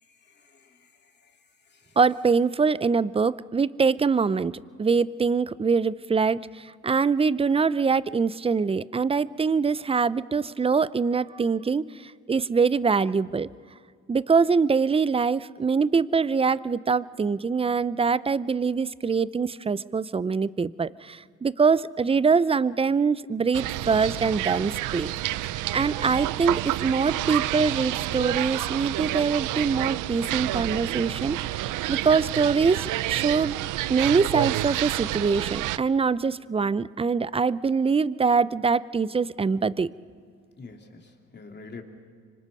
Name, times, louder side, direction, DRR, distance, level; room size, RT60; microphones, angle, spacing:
voice 1, 0.0-2.0 40.5-41.8, left 4 dB, 35° left, 3 dB, 2.9 m, -48 dB
voice 2, 2.0-4.5 4.8-13.5 14.1-25.1 25.7-31.6 31.9-33.6 33.9-39.9, right 5 dB, 20° right, 19 dB, 0.5 m, -24 dB
sound 1, 23.5-35.8, right 16 dB, 85° right, 0.5 m, -29 dB
25.5 x 24.5 x 5.4 m, 2.1 s
cardioid pair, 90°, 30 cm